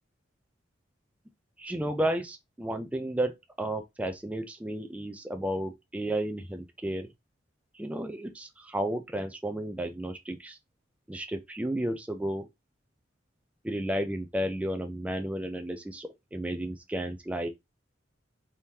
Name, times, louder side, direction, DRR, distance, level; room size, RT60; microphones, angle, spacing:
voice 1, 1.6-7.1 7.7-10.6 11.1-12.5 13.6-17.5, right 1 dB, 5° right, 0.3 m, -32 dB
3.5 x 2.9 x 2.8 m
head